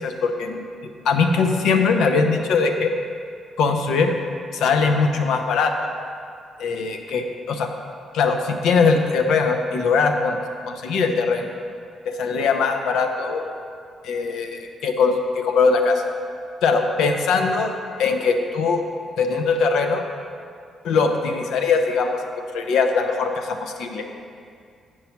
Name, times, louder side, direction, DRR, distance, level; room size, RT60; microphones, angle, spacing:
voice 1, 0.0-2.9 3.6-4.2 4.5-5.9 6.6-7.7 8.1-10.4 10.7-11.5 12.1-13.4 14.0-16.0 16.6-17.7 18.0-18.8 19.2-20.0 20.8-22.2 22.5-24.1, left 4 dB, 80° left, 5 dB, 0.7 m, -21 dB
9.0 x 4.7 x 5.9 m, 2.3 s
cardioid pair, 90°, 0 cm